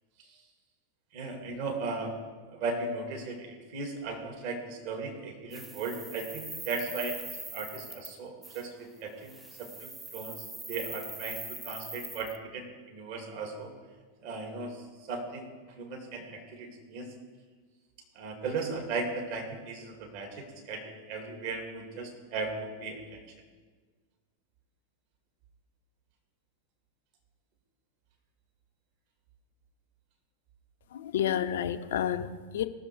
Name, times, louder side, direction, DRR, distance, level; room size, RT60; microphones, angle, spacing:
voice 1, 1.1-2.2 2.5-7.2 7.5-13.7 14.2-15.5 15.8-17.1 18.1-23.2, right 3 dB, 45° right, 1 dB, 2.4 m, -37 dB
sound 1, 5.5-8.2 8.4-8.7 9.2-12.4, right 2 dB, 10° right, 0.8 m, -42 dB
voice 2, 30.9-32.7, left 10 dB, 60° left, 11 dB, 0.6 m, -30 dB
18.5 x 6.9 x 4.7 m, 1.5 s
figure-of-eight pair, 90°, 0 cm